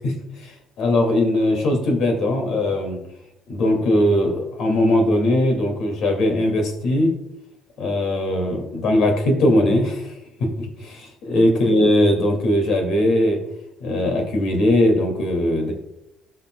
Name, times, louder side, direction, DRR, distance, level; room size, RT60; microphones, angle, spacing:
voice 1, 0.0-3.0 3.5-7.1 7.8-13.4 13.8-15.7, left 1 dB, 65° left, 3 dB, 2.2 m, -20 dB
16.5 x 5.8 x 2.2 m, 0.83 s
cardioid pair, 165°, 0 cm